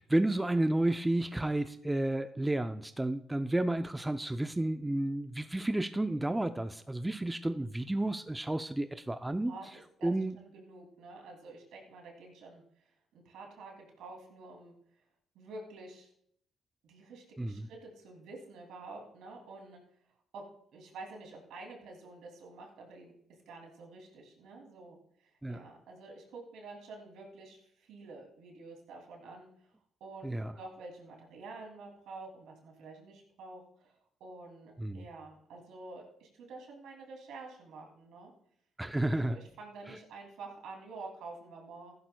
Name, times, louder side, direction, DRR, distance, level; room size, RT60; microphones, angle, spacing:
voice 1, 0.0-9.5 10.0-10.4 17.4-17.7 25.4-25.6 30.2-30.5 34.8-35.0 38.8-39.4, right 1 dB, 10° right, 9 dB, 0.5 m, -31 dB
voice 2, 9.5-12.6 13.1-14.7 15.3-16.1 16.8-19.8 20.3-20.4 20.7-23.1 23.5-29.5 30.0-33.9 34.2-38.3 39.1-41.9, right 3 dB, 85° right, 1 dB, 2.7 m, -49 dB
14.5 x 11.5 x 2.3 m, 0.66 s
cardioid pair, 90°, 0 cm